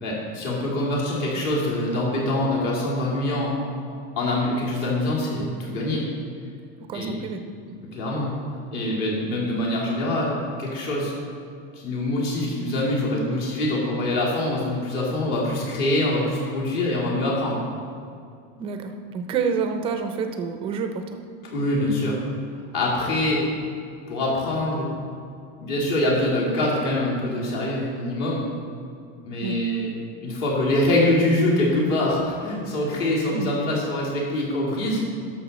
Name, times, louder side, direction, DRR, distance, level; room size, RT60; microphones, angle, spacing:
voice 1, 0.0-3.6 4.2-6.1 6.9-7.1 7.9-8.3 8.7-11.1 11.8-17.6 21.5-22.2 22.7-23.4 24.1-24.9 25.6-28.4 29.2-29.9 30.2-35.0, left 1 dB, 50° left, -4 dB, 2.5 m, -24 dB
voice 2, 6.9-7.4 18.6-21.2 29.4-29.6 33.3-33.5, right 5 dB, 20° right, 6 dB, 0.4 m, -28 dB
11.5 x 6.6 x 4.1 m, 2.3 s
cardioid pair, 180°, 29 cm